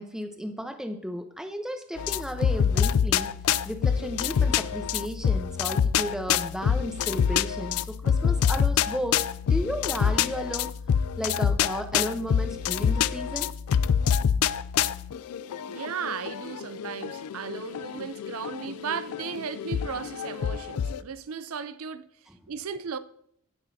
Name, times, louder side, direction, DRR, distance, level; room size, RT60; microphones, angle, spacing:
voice 1, 0.0-3.3 3.6-10.7 11.2-13.5 22.3-22.5, equal, 5° right, 0.8 m, -34 dB
sound 1, 2.0-21.0, left 8 dB, 85° left, 0.4 m, -26 dB
voice 2, 15.6-22.1 22.5-23.0, right 6 dB, 75° right, 0.5 m, -35 dB
16.0 x 6.3 x 2.7 m
head